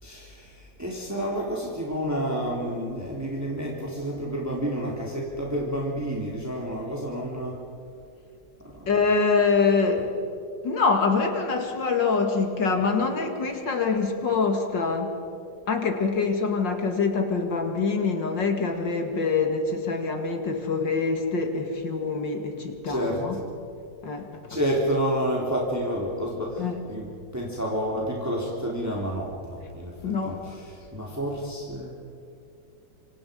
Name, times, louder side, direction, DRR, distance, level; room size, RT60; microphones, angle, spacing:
voice 1, 0.0-7.6 8.6-8.9 22.9-23.5 24.5-31.9, equal, 5° right, -3 dB, 3.6 m, -30 dB
voice 2, 8.9-10.1 10.6-15.2 15.7-23.4 24.0-24.6 26.6-26.8 30.0-30.4, left 4 dB, 60° left, 4 dB, 2.7 m, -25 dB
27.0 x 26.5 x 5.3 m, 2.6 s
omnidirectional pair, 2.3 m